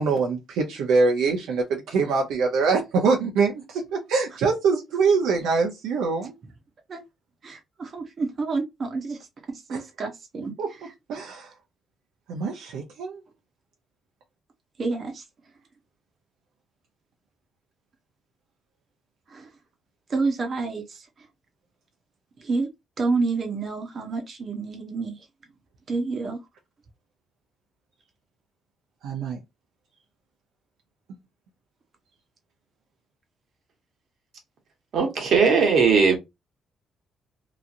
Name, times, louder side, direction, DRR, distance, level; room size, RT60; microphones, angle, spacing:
voice 1, 0.0-6.3 9.7-9.8 10.6-10.7 11.1-11.5 12.3-13.2 29.0-29.4, right 4 dB, 85° right, 0.7 m, -24 dB
voice 2, 7.4-9.2 9.5-10.9 14.8-15.2 19.3-19.5 20.1-21.0 22.4-22.7 23.0-25.2 25.9-26.4, right 3 dB, 45° right, 0.9 m, -29 dB
voice 3, 34.9-36.2, right 5 dB, 65° right, 1.1 m, -18 dB
3.0 x 2.5 x 2.5 m
cardioid pair, 90°, 0 cm